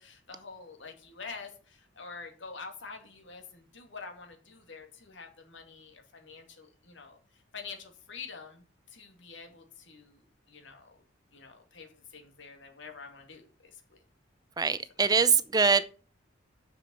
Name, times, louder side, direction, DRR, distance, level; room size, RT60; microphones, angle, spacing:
voice 1, 0.0-7.2 7.5-11.0 11.3-14.0, left 5 dB, 65° left, 2.6 m, -47 dB
voice 2, 14.6-15.8, right 5 dB, 20° right, 0.5 m, -23 dB
6.9 x 6.9 x 7.7 m
head